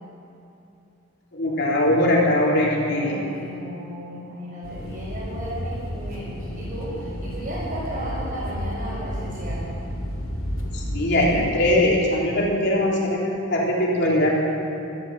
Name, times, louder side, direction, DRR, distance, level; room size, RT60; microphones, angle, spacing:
voice 1, 1.3-3.2 10.7-14.3, left 1 dB, 55° left, -3 dB, 3.3 m, -21 dB
voice 2, 2.8-9.6, equal, 50° right, -9 dB, 4.8 m, -35 dB
sound 1, 4.6-11.8, equal, 80° left, 2.6 m, -31 dB
13.5 x 13.0 x 7.5 m, 2.8 s
head